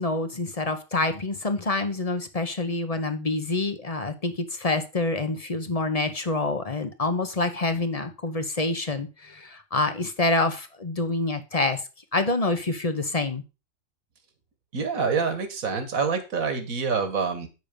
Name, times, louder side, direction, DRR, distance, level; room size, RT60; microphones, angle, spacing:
voice 1, 0.0-11.8 12.1-13.4, left 2 dB, 30° left, 8 dB, 1.0 m, -27 dB
voice 2, 14.7-17.5, right 5 dB, 85° right, 8 dB, 1.9 m, -26 dB
8.8 x 6.5 x 5.2 m, 0.30 s
omnidirectional pair, 1.4 m